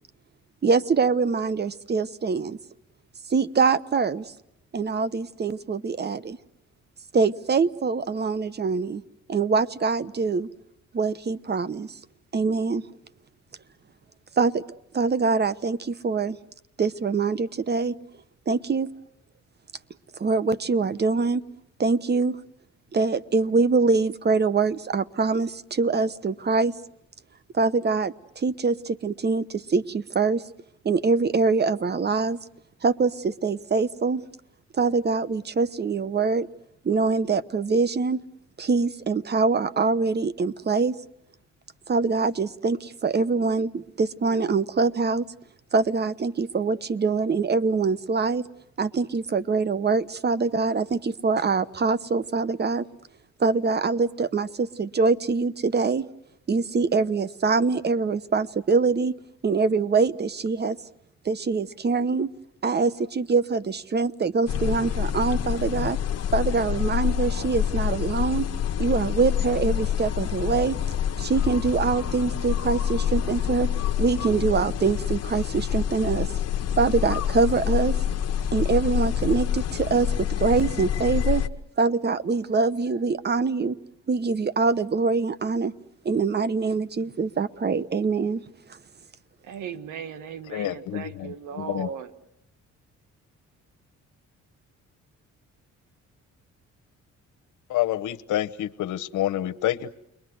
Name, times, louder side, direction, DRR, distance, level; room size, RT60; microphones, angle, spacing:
voice 1, 0.6-2.6 3.3-4.3 4.7-6.4 7.1-9.0 9.3-10.5 10.9-12.0 12.3-12.8 14.4-14.6 14.9-16.4 16.8-17.9 18.5-18.9 20.2-21.4 21.8-22.4 22.9-26.7 27.5-30.4 30.8-32.4 32.8-34.2 34.7-36.5 36.8-38.2 38.6-40.9 41.9-45.2 45.7-48.4 48.8-52.9 53.4-56.1 56.5-59.1 59.4-60.8 61.2-62.3 62.6-66.0 66.3-68.5 68.8-70.8 71.2-73.7 74.0-76.3 76.8-78.0 78.5-81.4 81.8-83.8 84.1-85.7 86.0-88.4, right 4 dB, 35° right, 16 dB, 1.0 m, -24 dB
sound 1, 64.5-81.5, left 9 dB, 55° left, 1.1 m, -27 dB
voice 2, 89.4-92.1, right 7 dB, 85° right, 11 dB, 1.7 m, -37 dB
voice 3, 90.5-91.0 91.6-91.9 97.7-99.9, left 13 dB, 80° left, 11 dB, 1.0 m, -27 dB
30.0 x 22.0 x 7.8 m, 0.80 s
cardioid pair, 90°, 30 cm